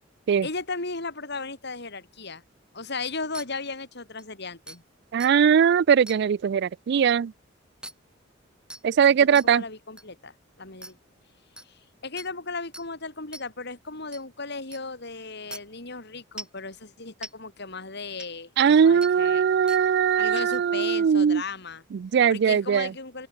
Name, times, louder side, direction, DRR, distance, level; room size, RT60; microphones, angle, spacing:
voice 1, 0.4-2.4 2.7-4.8 9.2-11.0 11.6-19.4 20.2-21.8 22.3-23.3, left 3 dB, 60° left, 5.1 m, -36 dB
shot glass clink toast, 3.3-3.4 4.2-4.3 4.7-4.8 5.2-5.3 6.1-6.2 7.8-7.9 8.7-8.8 9.3-9.4 10.0-10.1 10.8-10.9 11.6-11.7 12.2-12.3 12.7-12.8 13.3-13.4 14.1-14.2 14.7-14.8 15.5-15.6 16.4-16.6 17.2-17.3 18.2-18.3 19.0-19.1 19.7-19.8 20.4-20.6, right 1 dB, 5° right, 2.5 m, -40 dB
voice 2, 5.1-7.3 8.8-9.6 18.6-21.4 21.9-22.9, right 7 dB, 60° right, 0.3 m, -20 dB
open air
head